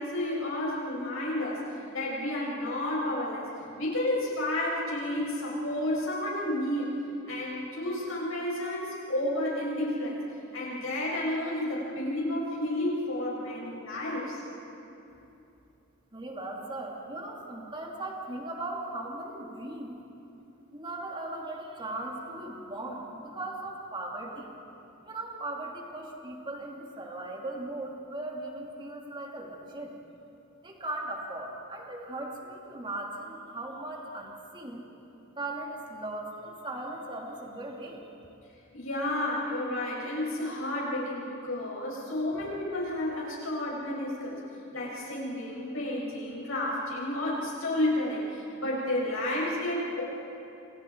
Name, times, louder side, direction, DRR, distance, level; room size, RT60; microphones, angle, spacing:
voice 1, 0.0-3.4 3.8-7.0 7.3-10.2 10.5-14.4 38.7-44.4 44.7-50.0, left 1 dB, 80° left, -5 dB, 7.3 m, -31 dB
voice 2, 16.1-20.0 20.7-24.5 25.0-30.0 30.6-34.8 35.4-38.0, right 2 dB, 25° right, -1 dB, 2.9 m, -38 dB
29.0 x 28.0 x 4.8 m, 2.8 s
head